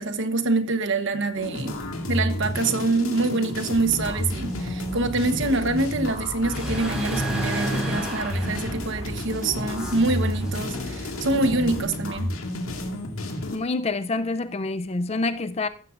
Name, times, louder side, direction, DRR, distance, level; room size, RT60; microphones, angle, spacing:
voice 1, 0.0-1.8 2.1-12.4, right 3 dB, 60° right, 1.1 m, -25 dB
sound 1, 1.4-13.6, left 1 dB, 80° left, 2.2 m, -31 dB
sound 2, 3.8-11.8, right 1 dB, 5° right, 4.8 m, -33 dB
voice 2, 13.5-15.7, left 3 dB, 30° left, 0.5 m, -27 dB
15.0 x 13.0 x 2.5 m
head